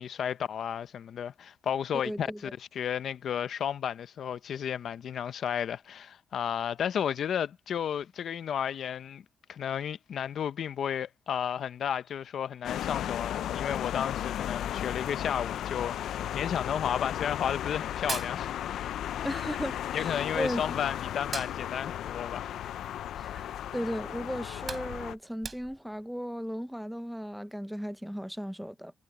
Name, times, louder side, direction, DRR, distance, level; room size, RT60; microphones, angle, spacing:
voice 1, 0.0-2.3 2.7-9.2 9.5-19.0 19.9-22.6, left 8 dB, 60° left, 0.7 m, -33 dB
voice 2, 2.0-2.5 19.2-20.9 23.2-28.9, equal, ahead, 0.6 m, -36 dB
Mallet percussion, 12.3-18.5, left 4 dB, 30° left, 5.4 m, -57 dB
sound 1, 12.6-25.1, left 11 dB, 85° left, 0.4 m, -35 dB
Hands, 18.0-19.2 19.4-20.7 21.1-23.5 23.9-24.0 24.4-26.0, right 5 dB, 30° right, 3.7 m, -41 dB
wide cardioid pair, 155°, 0 cm